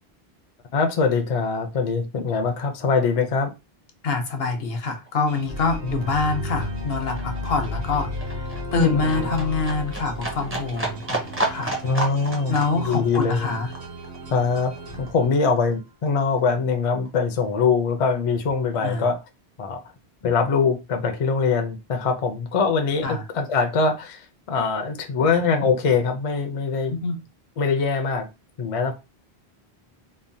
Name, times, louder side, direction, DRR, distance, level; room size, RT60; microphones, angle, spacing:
voice 1, 0.7-3.5 5.8-6.0 8.7-9.3 11.8-13.6 14.3-14.7 15.0-19.2 19.6-19.8 20.2-27.0 27.6-28.3 28.6-28.9, left 5 dB, 50° left, 0.4 m, -23 dB
voice 2, 4.0-8.1 8.3-8.4 8.7-11.7 12.5-13.7 18.8-19.1 23.0-23.2 26.9-27.2, left 4 dB, 70° left, 0.9 m, -25 dB
Livestock farm animals working animals, 4.4-4.5 4.7-15.7 16.1-17.1 17.4-17.5, right 1 dB, 15° right, 0.5 m, -32 dB
sound 1, 5.3-15.9, right 3 dB, 70° right, 1.1 m, -41 dB
sound 2, 5.5-10.6, left 2 dB, 50° right, 0.7 m, -32 dB
3.1 x 2.1 x 2.6 m
omnidirectional pair, 1.1 m